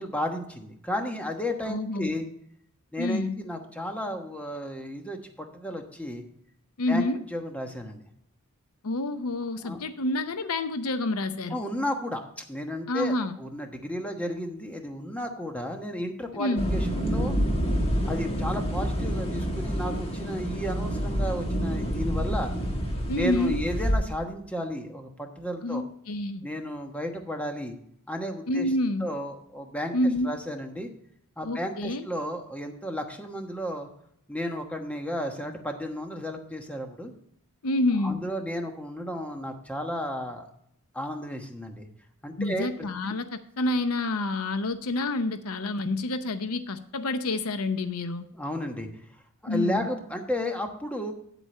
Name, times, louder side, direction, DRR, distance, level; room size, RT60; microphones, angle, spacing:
voice 1, 0.0-2.3 2.9-6.2 6.9-8.0 9.6-9.8 11.5-17.3 18.1-22.5 23.0-25.8 26.4-27.7 28.1-28.7 29.0-29.9 30.2-30.9 31.4-33.9 34.3-37.1 38.0-40.5 40.9-41.9 42.2-43.1 48.3-49.0 49.4-51.1, equal, 5° left, 4 dB, 1.1 m, -33 dB
voice 2, 1.7-2.1 3.0-3.4 6.8-7.2 8.8-11.6 12.9-13.4 16.3-16.7 23.1-23.6 25.6-26.4 28.5-29.1 29.9-30.3 31.4-32.0 37.6-38.2 42.4-48.2 49.5-49.9, left 2 dB, 75° left, 11 dB, 0.7 m, -28 dB
sound 1, 16.6-23.9, equal, 25° left, 1.5 m, -28 dB
8.5 x 8.2 x 4.2 m, 0.69 s
head